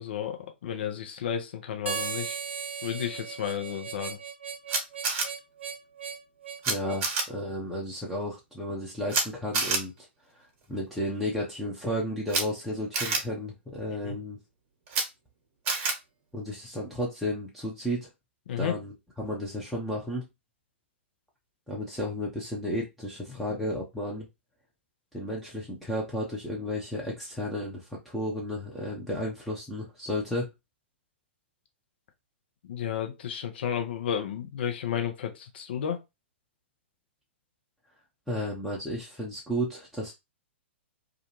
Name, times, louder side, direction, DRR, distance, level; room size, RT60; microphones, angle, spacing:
voice 1, 0.0-2.4 2.8-4.2 14.0-14.2 18.5-18.7 32.6-36.0, left 9 dB, 60° left, 0.7 m, -32 dB
Harmonica, 1.9-7.1, right 7 dB, 70° right, 0.5 m, -37 dB
Camera, 4.7-5.2 6.6-6.7 7.0-7.2 9.1-9.2 9.5-9.8 12.3-12.4 12.9-13.2 14.9-15.0 15.7-15.9, right 4 dB, 40° right, 0.9 m, -26 dB
voice 2, 6.7-10.1 10.3-14.4 16.3-18.1 18.6-18.9 19.2-20.3 21.7-24.3 25.1-30.5 38.3-40.1, left 1 dB, ahead, 0.7 m, -33 dB
2.4 x 2.3 x 2.9 m
figure-of-eight pair, 110°, 6 cm